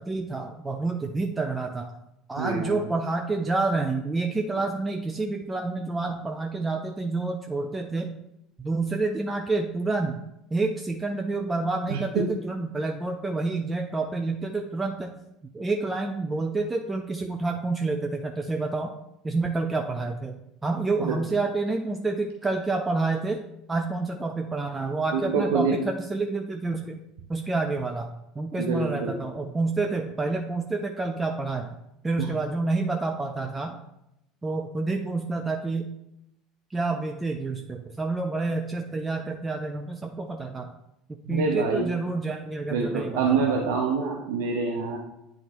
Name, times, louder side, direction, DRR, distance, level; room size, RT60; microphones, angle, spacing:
voice 1, 0.0-1.9 2.3-8.1 8.6-10.2 10.5-15.1 15.5-18.9 19.2-20.4 20.6-23.4 23.7-27.0 27.3-28.1 28.4-31.8 32.0-33.8 34.4-35.9 36.7-40.7 41.3-43.6, right 3 dB, 15° right, 4 dB, 0.5 m, -28 dB
voice 2, 2.4-2.8 11.9-12.3 21.0-21.2 25.1-25.7 28.6-29.2 32.2-32.3 41.2-41.9 42.7-45.0, right 5 dB, 65° right, 0 dB, 0.8 m, -26 dB
9.8 x 3.9 x 3.0 m, 0.83 s
figure-of-eight pair, 65°, 0 cm